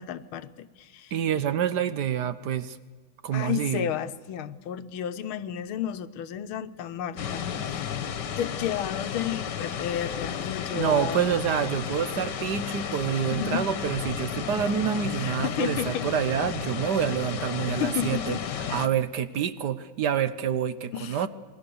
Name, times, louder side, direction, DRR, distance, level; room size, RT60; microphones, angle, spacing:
voice 1, 0.0-1.4 3.3-11.4 13.3-13.7 15.1-16.0 16.4-16.5 17.7-18.4 20.9-21.3, left 10 dB, 90° left, 11 dB, 1.7 m, -32 dB
voice 2, 1.1-2.8 3.2-3.9 10.7-18.4 18.7-21.3, right 8 dB, 60° right, 13 dB, 1.3 m, -27 dB
sound 1, 7.2-18.9, left 8 dB, 60° left, 1.6 m, -33 dB
27.0 x 20.5 x 6.9 m, 1.5 s
omnidirectional pair, 2.2 m